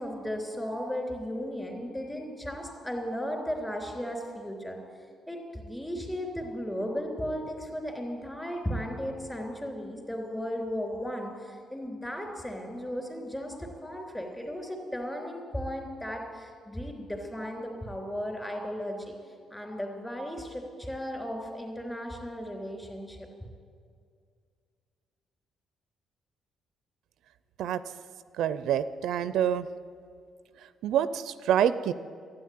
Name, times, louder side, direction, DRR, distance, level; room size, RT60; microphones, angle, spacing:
voice 1, 0.0-4.8 5.3-19.2 19.5-23.3, equal, 10° left, 2 dB, 3.2 m, -35 dB
voice 2, 28.4-29.7 30.8-31.9, right 9 dB, 80° right, 14 dB, 0.4 m, -26 dB
12.5 x 9.1 x 9.3 m, 2.2 s
cardioid pair, 90°, 0 cm